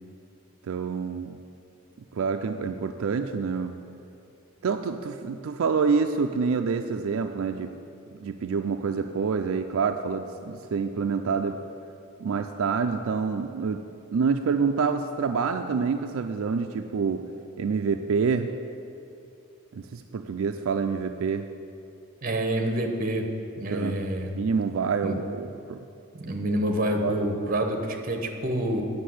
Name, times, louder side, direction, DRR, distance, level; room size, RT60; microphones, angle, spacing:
voice 1, 0.6-1.4 2.1-3.8 4.6-7.7 8.2-11.6 12.2-13.8 14.1-17.2 17.6-18.5 19.7-21.5 23.7-24.0 24.4-25.8 27.0-27.3, right 5 dB, 75° right, 6 dB, 0.4 m, -27 dB
voice 2, 22.2-23.3 23.6-24.3 25.0-25.2 26.1-28.8, right 1 dB, 40° right, 4 dB, 1.0 m, -27 dB
8.3 x 6.1 x 7.7 m, 2.6 s
head